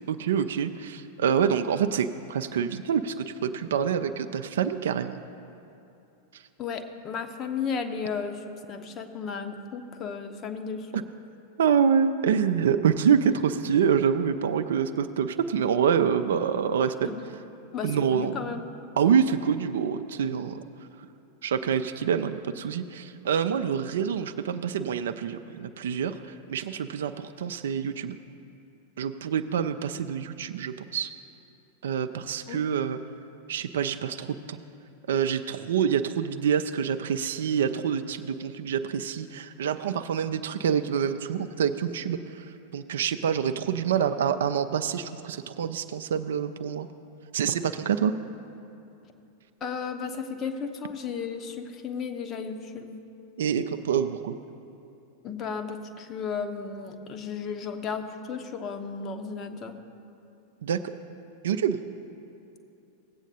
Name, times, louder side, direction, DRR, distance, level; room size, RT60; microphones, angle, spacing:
voice 1, 0.1-5.2 10.9-11.0 11.6-17.1 17.8-18.5 19.0-20.6 21.4-28.2 29.0-31.1 31.8-33.0 33.5-34.6 35.1-42.5 42.7-46.9 47.3-48.1 53.4-54.4 60.6-60.8 61.4-61.8, right 7 dB, 60° right, 10 dB, 0.4 m, -26 dB
voice 2, 6.6-11.0 17.0-17.2 17.7-18.7 32.5-32.6 49.6-53.0 55.2-59.8, left 6 dB, 30° left, 7 dB, 0.7 m, -34 dB
17.0 x 8.0 x 2.8 m, 2.8 s
figure-of-eight pair, 90°, 0 cm